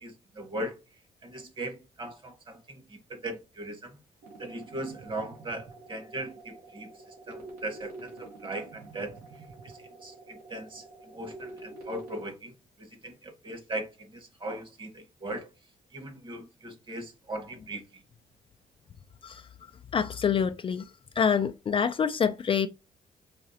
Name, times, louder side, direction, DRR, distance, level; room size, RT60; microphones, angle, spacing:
voice 1, 0.0-0.7 1.2-2.8 3.1-3.9 4.4-6.9 7.3-9.1 10.0-12.5 12.8-15.5 15.9-17.8, right 1 dB, 35° right, 1.5 m, -38 dB
sound 1, 4.2-12.2, right 2 dB, 80° right, 2.2 m, -47 dB
voice 2, 19.9-20.9 21.2-22.7, left 7 dB, 35° left, 0.4 m, -26 dB
4.9 x 3.1 x 2.8 m
cardioid pair, 80°, 15 cm